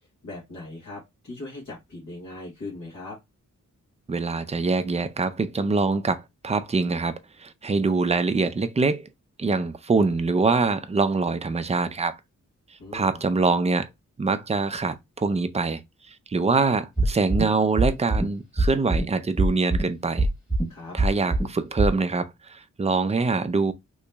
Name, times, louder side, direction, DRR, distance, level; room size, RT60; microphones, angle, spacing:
voice 1, 0.2-3.2 12.8-13.2 20.7-21.0, left 2 dB, 65° left, 1.6 m, -39 dB
voice 2, 4.1-9.1 9.4-12.2 12.9-13.9 14.2-15.8 16.3-20.3 20.9-23.7, right 4 dB, 20° right, 0.4 m, -24 dB
sound 1, 17.0-17.4 17.8-18.2 18.6-19.0 19.4-19.8 20.2-20.6 21.0-21.4 21.8-21.9, right 2 dB, ahead, 1.4 m, -21 dB
3.1 x 2.8 x 3.3 m
wide cardioid pair, 150°, 31 cm